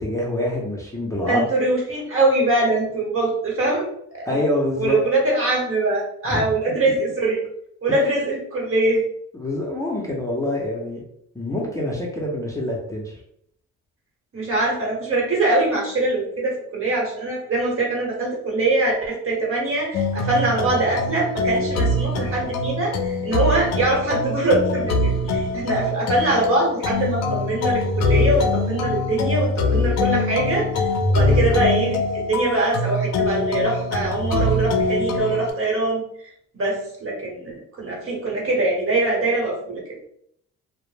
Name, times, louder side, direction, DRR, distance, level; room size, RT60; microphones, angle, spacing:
voice 1, 0.0-1.4 4.3-5.0 6.3-6.5 7.9-8.1 9.3-11.0 11.3-13.2, left 1 dB, 10° left, -4 dB, 0.6 m, -26 dB
voice 2, 1.3-3.9 4.1-4.4 4.8-7.4 7.8-9.0 14.3-36.0 36.5-39.8, right 2 dB, 45° right, -2 dB, 1.1 m, -23 dB
sound 1, 19.9-35.5, left 2 dB, 60° left, 0.5 m, -23 dB
2.1 x 2.0 x 3.2 m, 0.70 s
cardioid pair, 90°, 30 cm